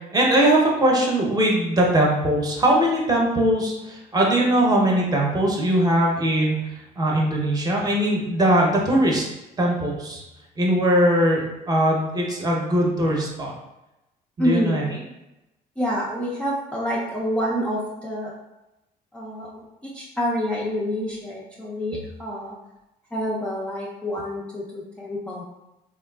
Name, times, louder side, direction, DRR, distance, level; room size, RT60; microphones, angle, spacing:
voice 1, 0.1-9.2 9.6-10.2 10.6-13.5 14.4-14.8, right 1 dB, 20° right, -2 dB, 0.7 m, -20 dB
voice 2, 14.4-14.8 15.8-18.3 19.1-22.5 23.1-25.4, equal, 5° left, -6 dB, 0.4 m, -27 dB
3.4 x 2.4 x 2.3 m, 0.94 s
cardioid pair, 110°, 17 cm